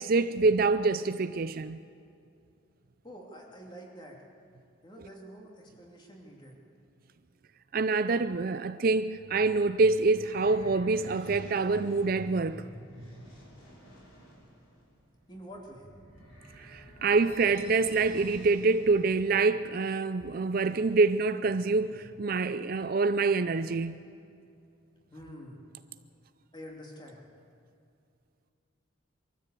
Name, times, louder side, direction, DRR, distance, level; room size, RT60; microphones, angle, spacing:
voice 1, 0.0-1.8 7.7-12.7 16.6-24.0, right 3 dB, 45° right, 0.4 m, -26 dB
voice 2, 3.0-4.2 4.8-6.6 15.3-15.9 25.1-25.6 26.5-27.2, equal, 20° left, 2.8 m, -47 dB
sound 1, 9.0-19.4, equal, 85° left, 6.3 m, -49 dB
23.5 x 13.5 x 8.4 m
head